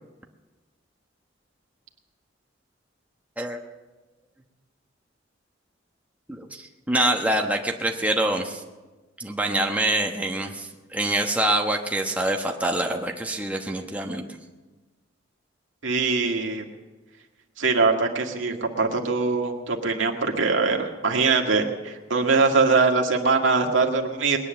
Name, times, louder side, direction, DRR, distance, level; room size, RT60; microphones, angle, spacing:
voice 1, 6.3-8.6 9.2-14.2, right 1 dB, 10° right, 1 dB, 1.1 m, -25 dB
voice 2, 15.8-16.6 17.6-24.4, right 4 dB, 85° right, 2 dB, 1.9 m, -22 dB
21.0 x 9.8 x 7.0 m, 1.2 s
head